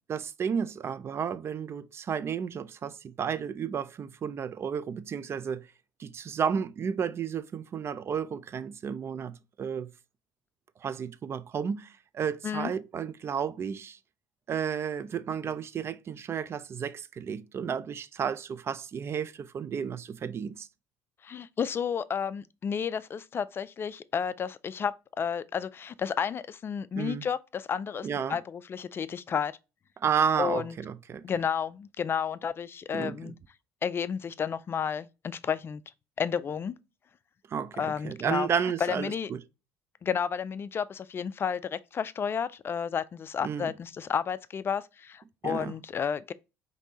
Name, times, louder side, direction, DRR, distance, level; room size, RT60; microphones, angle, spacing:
voice 1, 0.1-5.7 6.0-9.9 10.8-14.0 14.5-20.7 27.0-27.2 28.0-28.4 30.0-31.3 32.9-33.3 37.5-39.4 43.4-43.7 45.4-45.7, right 7 dB, 40° right, 0.4 m, -32 dB
voice 2, 21.2-29.5 30.4-30.7 31.2-33.3 33.8-35.8 36.2-36.8 37.7-38.5 38.8-39.3 40.0-46.3, left 7 dB, 35° left, 0.3 m, -31 dB
5.2 x 2.6 x 2.8 m
hypercardioid pair, 75°, 7 cm